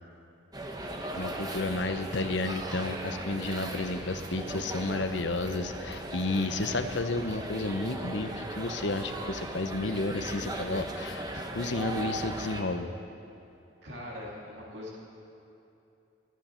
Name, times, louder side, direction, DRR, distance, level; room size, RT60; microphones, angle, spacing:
sound 1, 0.5-12.6, right 1 dB, 20° right, 0.9 m, -38 dB
voice 1, 1.2-12.9, left 2 dB, 75° left, 8 dB, 0.8 m, -32 dB
voice 2, 13.8-15.0, left 1 dB, 70° right, -4 dB, 2.4 m, -41 dB
24.5 x 10.5 x 4.4 m, 2.8 s
head